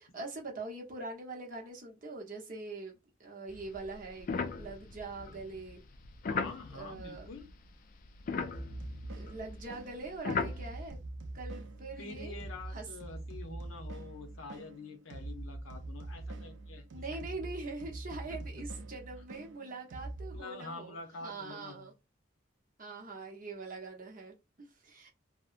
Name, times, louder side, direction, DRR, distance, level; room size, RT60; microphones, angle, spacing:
voice 1, 0.0-4.3 4.6-5.8 6.7-7.3 9.1-11.0 11.3-12.4 12.7-12.8 16.9-21.9 22.8-25.1, right 3 dB, 45° right, 0.7 m, -43 dB
sound 1, 3.5-7.7 8.0-10.9, left 4 dB, 45° left, 0.3 m, -38 dB
voice 2, 6.2-7.5 12.0-17.2 18.3-18.4 20.3-21.9, left 3 dB, 90° left, 0.7 m, -47 dB
sound 2, 8.5-20.4, right 2 dB, 65° right, 0.4 m, -44 dB
2.8 x 2.1 x 2.4 m
head